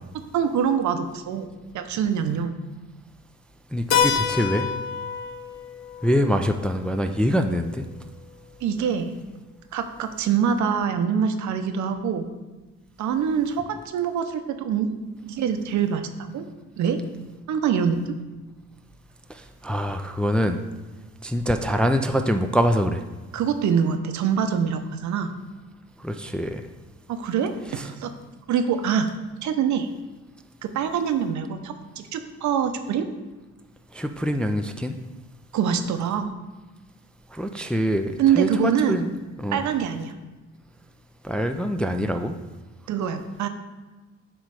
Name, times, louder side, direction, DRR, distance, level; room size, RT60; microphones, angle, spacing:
voice 1, 0.3-1.5 1.7-2.5 8.6-9.2 9.7-12.3 13.0-15.0 15.2-16.4 16.8-17.0 17.5-18.0 23.3-25.3 27.1-28.1 28.5-29.1 29.4-29.9 30.6-33.1 35.5-36.3 38.2-39.0 39.5-40.1 42.9-43.5, right 7 dB, 70° right, 8 dB, 0.7 m, -24 dB
voice 2, 3.7-4.7 6.0-7.9 19.3-20.6 21.2-23.0 26.0-26.6 27.7-27.9 33.9-35.0 37.3-39.1 39.4-39.6 41.2-42.4, equal, 5° left, 5 dB, 0.3 m, -24 dB
Keyboard (musical), 3.9-8.4, left 7 dB, 60° left, 0.8 m, -28 dB
7.5 x 3.1 x 4.8 m, 1.2 s
cardioid pair, 90°, 30 cm